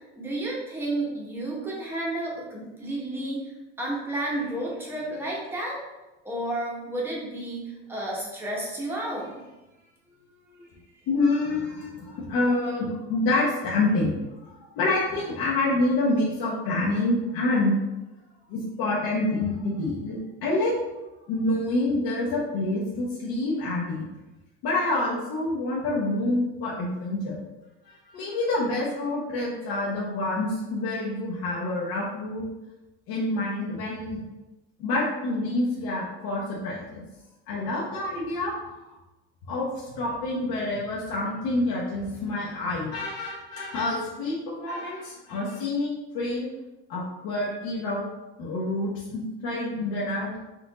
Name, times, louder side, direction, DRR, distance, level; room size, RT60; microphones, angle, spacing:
voice 1, 0.0-3.5 3.8-5.9 6.2-9.3 10.5-10.7, right 1 dB, 10° right, -4 dB, 0.9 m, -31 dB
voice 2, 11.1-14.1 14.4-17.8 18.5-20.8 21.3-24.1 24.6-27.4 27.9-32.4 33.1-34.2 34.8-37.0 37.5-38.5 39.5-46.5 46.9-48.0 48.4-50.3, left 2 dB, 55° left, -6 dB, 0.9 m, -27 dB
4.3 x 2.5 x 3.9 m, 1.1 s
cardioid pair, 160°, 29 cm